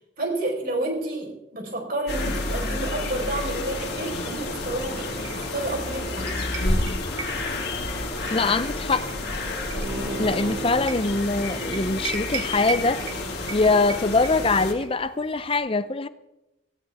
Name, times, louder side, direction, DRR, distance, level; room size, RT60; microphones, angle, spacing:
voice 1, 0.2-6.5 10.3-10.4, right 2 dB, 50° right, 4.5 m, -30 dB
sound 1, 2.1-14.7, left 2 dB, 55° left, 2.8 m, -30 dB
sound 2, 4.7-15.5, right 5 dB, 65° right, 2.1 m, -40 dB
voice 2, 8.3-9.1 10.2-13.0 13.5-16.1, left 3 dB, 30° left, 0.6 m, -23 dB
Bowed string instrument, 9.7-14.3 14.7-14.8, right 3 dB, 85° right, 2.0 m, -37 dB
18.5 x 16.5 x 3.6 m
head